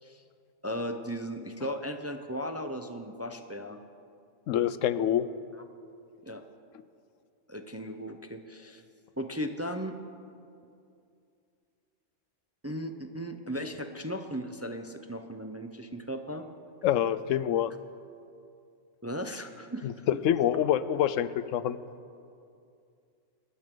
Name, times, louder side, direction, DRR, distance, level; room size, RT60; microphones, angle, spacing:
voice 1, 0.6-3.8 6.2-6.4 7.5-8.8 9.2-9.9 12.6-16.5 19.0-20.1, equal, 15° right, 6 dB, 0.5 m, -36 dB
voice 2, 4.5-5.3 16.8-17.7 19.8-19.9 20.2-21.8, left 10 dB, 90° left, 15 dB, 1.0 m, -26 dB
27.5 x 12.5 x 3.8 m, 2.5 s
omnidirectional pair, 1.3 m